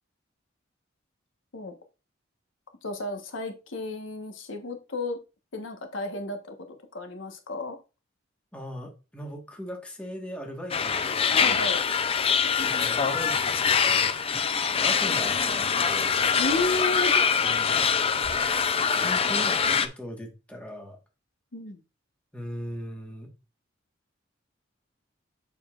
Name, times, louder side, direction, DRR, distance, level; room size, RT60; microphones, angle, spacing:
voice 1, 2.8-5.2 5.5-7.8 11.4-11.8 16.4-17.3 21.5-21.8, left 2 dB, 80° left, 1.2 m, -32 dB
voice 2, 8.5-11.6 12.5-14.4 14.7-16.1 17.4-17.8 18.9-21.0 22.3-23.3, equal, 5° left, 1.5 m, -39 dB
sound 1, 10.7-19.9, left 6 dB, 30° left, 0.5 m, -24 dB
7.0 x 6.9 x 2.5 m
head